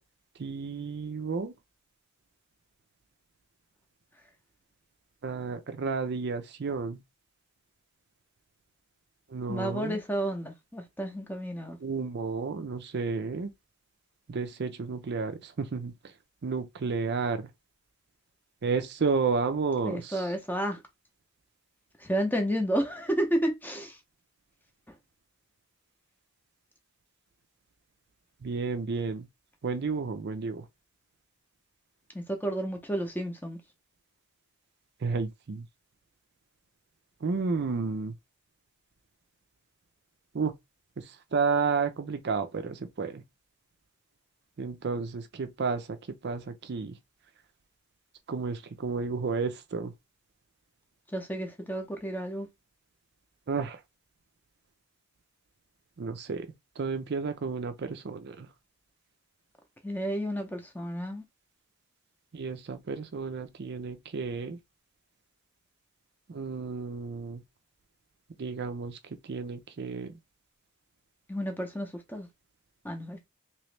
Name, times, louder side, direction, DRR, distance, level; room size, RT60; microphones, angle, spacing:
voice 1, 0.4-1.5 5.2-7.0 9.3-10.0 11.8-13.5 14.3-15.9 16.4-17.5 18.6-20.3 28.4-29.3 29.6-30.6 35.0-35.6 37.2-38.1 40.3-40.5 41.0-43.2 44.6-46.0 46.2-47.0 48.3-49.9 53.5-53.8 56.0-56.5 56.8-58.5 62.3-64.6 66.3-67.4 68.4-69.0 69.2-70.1, right 4 dB, 50° right, 0.4 m, -31 dB
voice 2, 9.5-11.8 19.8-20.8 22.0-24.0 32.1-33.6 51.1-52.5 59.8-61.2 71.3-72.3 72.8-73.3, equal, 10° left, 0.7 m, -31 dB
3.0 x 3.0 x 3.2 m
head